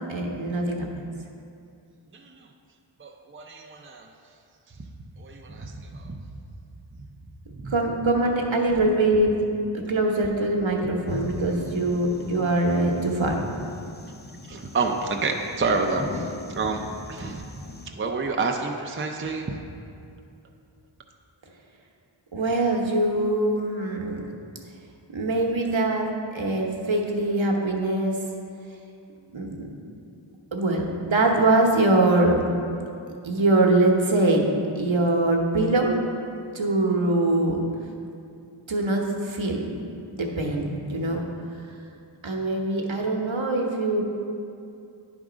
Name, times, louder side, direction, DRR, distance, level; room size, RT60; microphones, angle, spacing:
voice 1, 0.1-0.9 7.7-9.4 9.9-13.4 22.3-24.2 25.1-28.2 29.3-29.7 30.5-32.4 33.2-34.4 34.7-36.0 36.3-37.6 38.7-39.7 40.1-41.2 42.2-44.0, right 2 dB, 65° right, 0 dB, 1.1 m, -23 dB
voice 2, 2.1-2.5 3.0-4.1 5.2-6.2 7.6-7.7 14.5-16.8 17.1-17.4 17.9-19.5, right 4 dB, 25° right, 2 dB, 0.5 m, -29 dB
sound 1, 11.1-17.9, left 3 dB, 20° left, 0.6 m, -39 dB
10.0 x 3.6 x 5.0 m, 2.5 s
wide cardioid pair, 50°, 49 cm